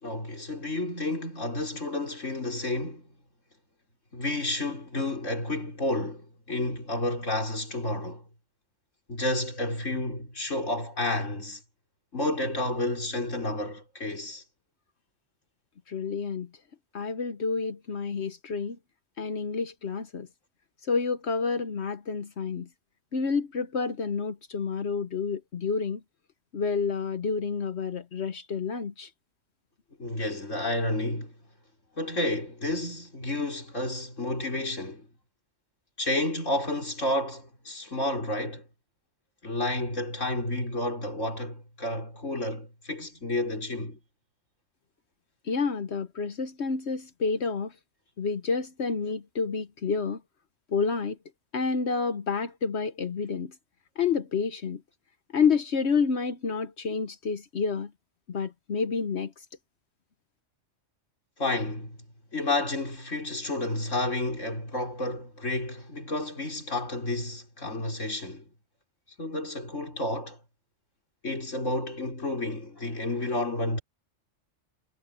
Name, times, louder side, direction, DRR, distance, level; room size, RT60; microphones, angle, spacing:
voice 1, 0.0-3.0 4.1-8.2 9.1-11.6 12.1-14.4 30.0-31.3 32.0-35.1 36.0-38.6 39.4-44.0 61.4-62.0 62.3-68.4 69.2-70.4 71.2-73.8, left 2 dB, 85° left, 6.3 m, -31 dB
voice 2, 15.9-16.5 16.9-18.8 19.2-20.3 20.9-22.7 23.1-26.0 26.5-29.1 45.5-47.7 48.2-50.2 50.7-51.2 51.5-53.5 54.0-54.8 55.3-57.9 58.3-59.3, left 5 dB, 65° left, 1.3 m, -29 dB
omnidirectional pair, 1.3 m